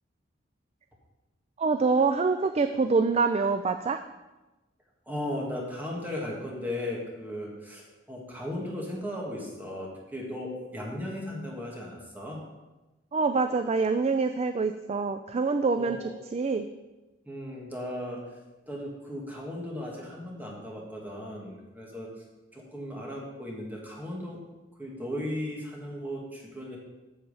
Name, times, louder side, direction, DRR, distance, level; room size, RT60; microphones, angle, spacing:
voice 1, 1.6-4.0 13.1-16.7, right 4 dB, 35° right, 8 dB, 0.4 m, -25 dB
voice 2, 5.1-12.4 15.7-16.1 17.3-18.2 18.7-22.1 22.5-24.4 24.8-26.8, left 1 dB, 10° right, -2 dB, 1.7 m, -36 dB
8.6 x 7.3 x 5.5 m, 1.1 s
head